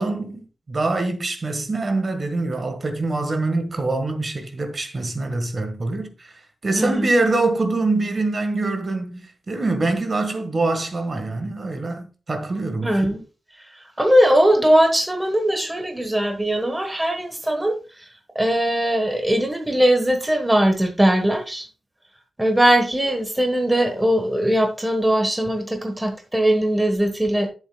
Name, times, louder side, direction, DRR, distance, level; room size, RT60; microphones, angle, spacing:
voice 1, 0.0-13.1, right 2 dB, 35° right, 1.5 m, -24 dB
voice 2, 6.8-7.1 12.8-13.2 13.7-18.1 18.3-21.7 22.4-27.5, right 1 dB, 10° right, 1.2 m, -20 dB
12.0 x 7.2 x 2.2 m
wide cardioid pair, 175°, 0 cm